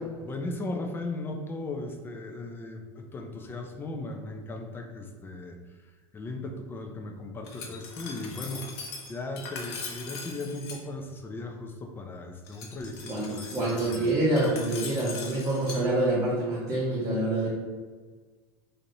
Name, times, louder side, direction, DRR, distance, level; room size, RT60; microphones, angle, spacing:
voice 1, 0.2-14.2, left 2 dB, 15° left, 3 dB, 0.4 m, -37 dB
Glass, 7.4-10.8 12.5-15.8, left 4 dB, 85° left, 0.7 m, -41 dB
voice 2, 13.1-17.5, right 1 dB, 30° right, -8 dB, 0.8 m, -26 dB
3.1 x 2.6 x 2.7 m, 1.5 s
supercardioid pair, 130°, 13 cm